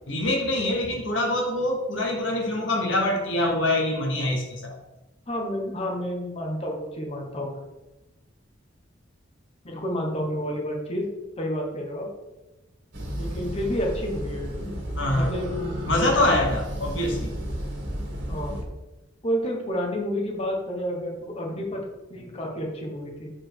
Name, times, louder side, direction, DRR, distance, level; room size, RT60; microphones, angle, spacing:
voice 1, 0.1-4.8 15.0-15.3 15.9-17.3, left 1 dB, 65° left, 1 dB, 1.1 m, -24 dB
voice 2, 5.3-7.6 9.6-11.1 11.4-12.1 13.1-14.8 15.1-16.4 18.3-18.6 19.2-23.3, equal, 30° left, 0 dB, 1.2 m, -30 dB
sound 1, 12.9-18.6, equal, 60° right, 2.1 m, -32 dB
7.1 x 4.3 x 4.6 m, 1.0 s
head